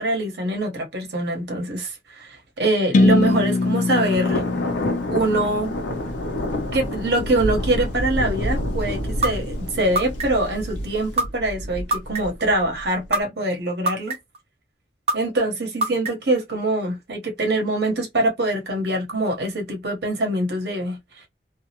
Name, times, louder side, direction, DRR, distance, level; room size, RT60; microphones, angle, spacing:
voice 1, 0.0-4.4 5.1-5.7 6.7-14.2 15.1-21.0, right 1 dB, 65° right, 1.0 m, -24 dB
sound 1, 2.9-6.8, left 2 dB, 45° left, 0.3 m, -22 dB
Thunder, 3.2-13.1, left 1 dB, 80° left, 0.7 m, -29 dB
sound 2, 9.2-9.3 10.0-10.5 11.2-11.3 11.9-12.4 13.1-13.2 13.9-14.4 15.1-15.2 15.8-16.3, right 2 dB, 35° right, 0.5 m, -22 dB
2.4 x 2.0 x 2.8 m
head